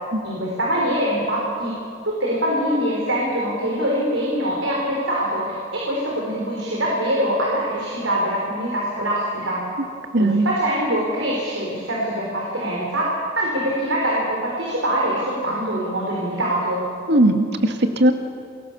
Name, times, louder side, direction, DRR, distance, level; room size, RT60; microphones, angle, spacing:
voice 1, 0.2-1.7 2.2-9.6 10.2-13.1 13.4-16.8, equal, 90° right, -3 dB, 5.3 m, -23 dB
voice 2, 10.1-10.5 17.1-18.1, right 1 dB, 65° right, 5 dB, 2.1 m, -18 dB
29.0 x 22.5 x 7.1 m, 2.3 s
head